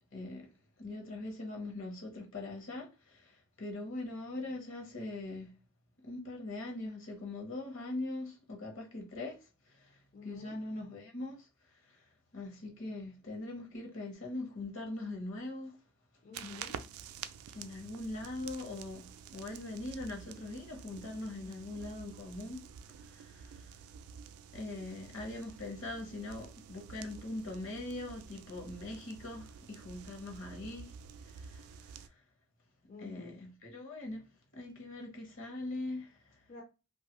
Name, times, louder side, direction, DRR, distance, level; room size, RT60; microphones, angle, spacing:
voice 1, 0.1-0.5 0.8-5.5 6.0-15.8 17.5-22.6 23.0-23.8 24.5-30.9 31.2-32.2 33.0-34.3 34.5-36.4, left 2 dB, 60° left, 0.9 m, -42 dB
voice 2, 10.1-10.6 16.2-16.8 21.2-21.4 32.9-33.4 36.5-36.6, left 5 dB, 40° left, 0.5 m, -49 dB
sound 1, 16.3-32.1, right 7 dB, 90° right, 0.3 m, -49 dB
2.6 x 2.3 x 2.9 m
head